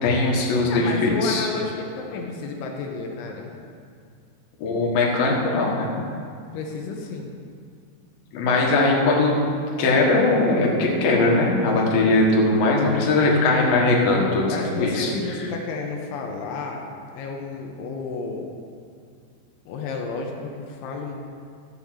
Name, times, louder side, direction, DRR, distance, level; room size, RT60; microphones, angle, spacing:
voice 1, 0.0-1.5 4.6-5.9 8.3-9.3 9.8-15.1, left 2 dB, 60° left, -2 dB, 3.1 m, -20 dB
voice 2, 0.6-3.6 6.5-7.3 14.5-16.9 17.1-18.5 19.7-21.1, left 4 dB, 90° left, 1 dB, 3.4 m, -31 dB
14.0 x 5.5 x 7.7 m, 2.3 s
omnidirectional pair, 5.4 m